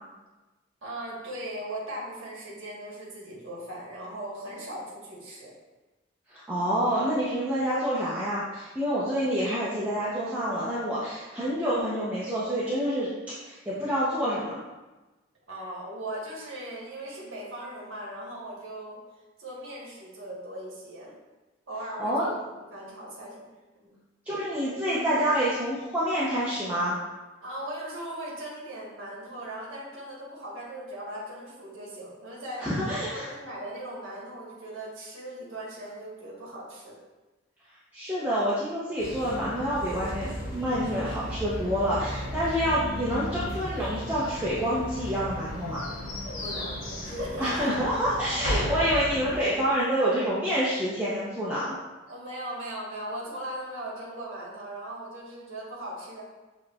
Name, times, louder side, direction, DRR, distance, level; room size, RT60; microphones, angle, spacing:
voice 1, 0.8-5.5 15.5-19.0 19.4-21.1 21.7-22.4 22.7-23.4 23.7-23.9 27.4-32.7 33.1-36.9 46.4-48.2 52.1-56.2, right 1 dB, 80° right, -6 dB, 1.3 m, -38 dB
voice 2, 6.3-13.1 13.4-14.6 22.0-22.3 24.3-27.0 32.6-33.3 37.9-45.9 47.4-51.8, equal, 10° right, -10 dB, 0.6 m, -27 dB
sound 1, 39.0-49.4, left 1 dB, 70° left, 1.0 m, -35 dB
7.0 x 3.0 x 2.3 m, 1.1 s
head